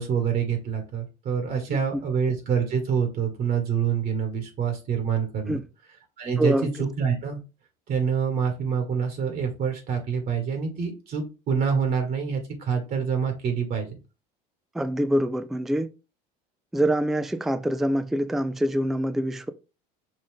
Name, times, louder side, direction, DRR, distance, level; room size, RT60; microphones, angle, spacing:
voice 1, 0.0-5.6 6.2-7.4 7.9-14.0, right 7 dB, 55° right, 1.5 m, -26 dB
voice 2, 1.7-2.0 5.5-5.6 6.4-6.7 14.7-15.9 16.7-19.5, right 1 dB, ahead, 0.3 m, -25 dB
5.4 x 2.4 x 3.5 m
supercardioid pair, 100°, 19 cm